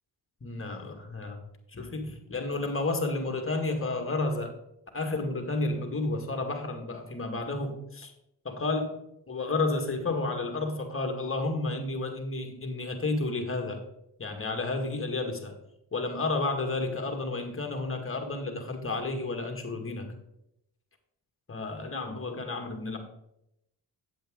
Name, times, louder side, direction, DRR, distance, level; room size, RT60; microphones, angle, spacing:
voice 1, 0.4-1.4 1.7-4.5 4.9-8.1 8.5-9.0 9.3-13.8 14.2-15.5 15.9-20.1 21.5-23.0, left 2 dB, 30° left, 4 dB, 2.0 m, -31 dB
8.8 x 7.9 x 3.8 m, 0.81 s
supercardioid pair, 60°, 44 cm